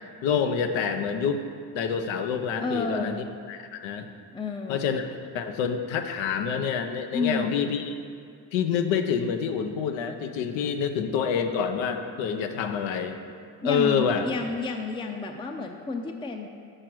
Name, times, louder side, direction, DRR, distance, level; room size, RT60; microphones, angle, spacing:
voice 1, 0.2-1.4 1.7-3.2 3.5-4.1 4.7-5.0 5.3-7.9 8.5-13.2 13.6-14.2, left 6 dB, 80° left, 7 dB, 0.7 m, -27 dB
voice 2, 2.6-3.1 4.3-4.8 7.1-7.6 13.6-16.5, left 3 dB, 10° left, 3 dB, 0.5 m, -30 dB
6.6 x 6.2 x 4.6 m, 2.3 s
hypercardioid pair, 55°, 45 cm